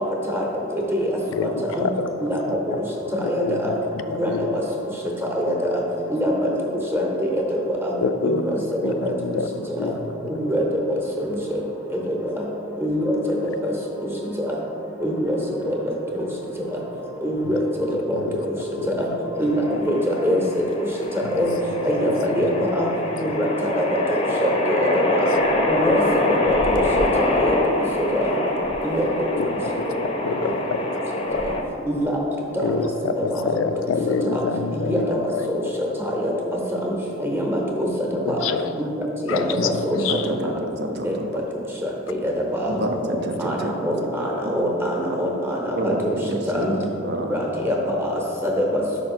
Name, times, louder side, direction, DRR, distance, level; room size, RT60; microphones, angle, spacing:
voice 1, 1.3-2.1 2.5-2.8 3.2-4.6 5.4-5.6 6.0-6.1 8.0-10.1 13.4-13.6 17.4-17.6 17.9-19.0 19.4-19.8 21.2-21.4 21.9-23.7 25.8-25.9 26.3-26.9 27.3-27.5 29.4-29.5 29.8-29.9 30.2-30.8 31.3-31.5 32.6-35.6 38.2-38.7 39.3-40.3 43.2-43.3 46.6-46.7, left 4 dB, 70° left, 9 dB, 0.3 m, -28 dB
voice 2, 3.2-3.7 4.2-4.6 5.4-5.8 6.1-6.5 6.9-7.0 7.5-7.9 8.2-9.1 9.8-9.9 10.3-10.6 12.1-12.2 12.8-13.1 13.6-13.7 15.0-15.3 15.7-15.8 17.2-17.6 18.9-19.1 19.4-20.4 21.3-21.5 21.8-22.9 23.2-23.4 23.8-23.9 24.4-25.3 25.7-26.0 26.5-26.6 27.0-27.6 28.1-28.3 28.8-29.3 31.9-32.2 33.3-33.4 34.3-34.4 34.7-35.2 36.1-36.3 36.8-36.9 37.2-37.9 38.3-38.5 38.8-38.9 39.3-40.0 41.0-41.1 41.8-41.9 42.2-42.3 42.6-42.8 43.4-43.6 43.8-44.2 44.5-45.6 45.8-45.9 46.5-46.7 47.3-47.8 48.0-48.1 48.4-48.6, equal, 10° right, -2 dB, 0.8 m, -23 dB
sound 1, 19.5-31.6, left 2 dB, 30° left, 0.6 m, -25 dB
voice 3, 40.1-41.4 42.7-43.7 44.0-44.1 44.4-44.5 45.1-45.2 45.8-47.4, right 2 dB, 55° right, 4 dB, 0.6 m, -28 dB
5.1 x 4.9 x 4.3 m, 2.9 s
head